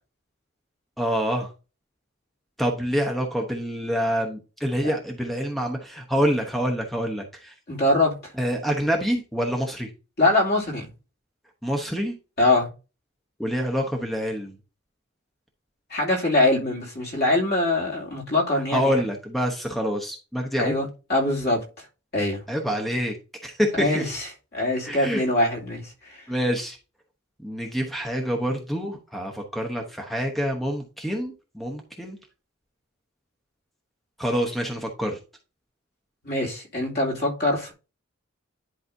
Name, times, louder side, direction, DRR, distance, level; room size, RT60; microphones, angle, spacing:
voice 1, 1.0-1.5 2.6-7.5 8.4-9.9 11.6-12.1 13.4-14.6 18.7-20.8 22.5-23.2 23.4-24.1 24.8-25.2 26.3-26.8 27.4-32.2 34.2-35.2, equal, ahead, 0.9 m, -26 dB
voice 2, 7.7-8.2 10.2-10.9 12.4-12.7 15.9-18.9 20.6-21.8 22.1-22.4 23.8-24.3 24.5-26.3 36.2-37.7, left 2 dB, 50° left, 2.6 m, -23 dB
10.5 x 4.9 x 2.7 m
head